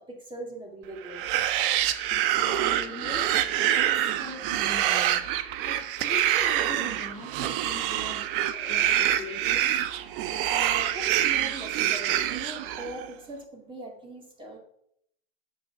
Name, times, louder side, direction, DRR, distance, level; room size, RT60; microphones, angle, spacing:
voice 1, 0.1-1.3 10.5-14.6, right 2 dB, 15° right, 1 dB, 2.3 m, -40 dB
sound 1, 1.0-13.1, right 12 dB, 50° right, 1.0 m, -26 dB
voice 2, 2.1-3.4 3.8-5.2 5.7-8.3 8.5-9.7, left 3 dB, 15° left, 1 dB, 2.1 m, -41 dB
8.7 x 6.9 x 6.0 m, 0.70 s
hypercardioid pair, 135°, 33 cm